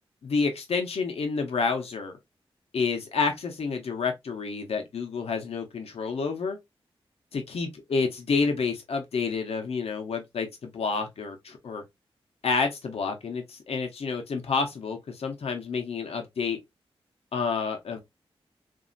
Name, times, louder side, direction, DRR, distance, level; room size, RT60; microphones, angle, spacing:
voice 1, 0.2-2.2 2.7-6.6 7.3-11.8 12.4-16.6 17.3-18.0, left 4 dB, 80° left, 0.9 m, -29 dB
3.0 x 2.7 x 2.6 m
cardioid pair, 55°, 10 cm